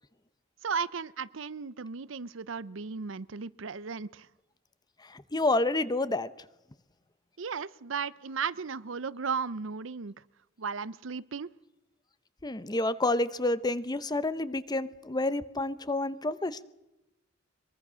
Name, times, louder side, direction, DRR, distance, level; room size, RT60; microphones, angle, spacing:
voice 1, 0.6-4.3 7.4-10.1 10.6-11.5, right 5 dB, 70° right, 0.7 m, -35 dB
voice 2, 5.0-6.3 12.4-16.6, left 2 dB, 20° left, 0.8 m, -29 dB
23.0 x 23.0 x 6.3 m
head